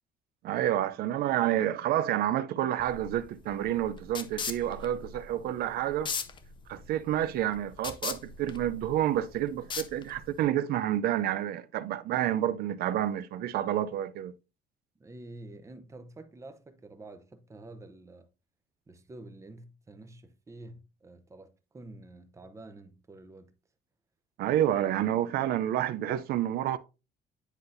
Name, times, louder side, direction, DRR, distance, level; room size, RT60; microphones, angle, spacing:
voice 1, 0.4-6.1 6.7-14.4 24.4-26.8, right 12 dB, 70° right, 0.5 m, -29 dB
sound 1, 2.8-10.4, left 5 dB, 30° left, 0.6 m, -39 dB
voice 2, 15.0-18.3 18.9-23.5 24.5-24.6, right 2 dB, 20° right, 0.8 m, -48 dB
9.9 x 4.1 x 2.6 m
cardioid pair, 125°, 17 cm